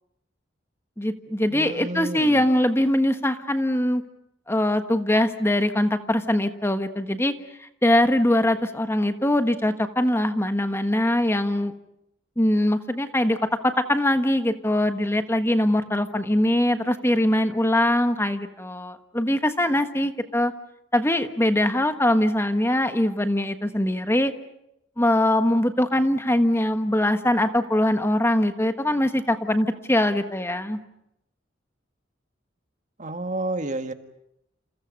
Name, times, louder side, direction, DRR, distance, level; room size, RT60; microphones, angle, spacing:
voice 1, 1.0-4.0 4.5-7.3 7.6-11.7 12.4-13.4 13.6-20.5 20.9-24.3 25.0-30.8, left 1 dB, 15° left, 8 dB, 1.4 m, -22 dB
voice 2, 1.5-2.4 33.0-33.9, right 2 dB, 40° right, 8 dB, 1.7 m, -30 dB
29.0 x 28.5 x 5.4 m, 0.79 s
head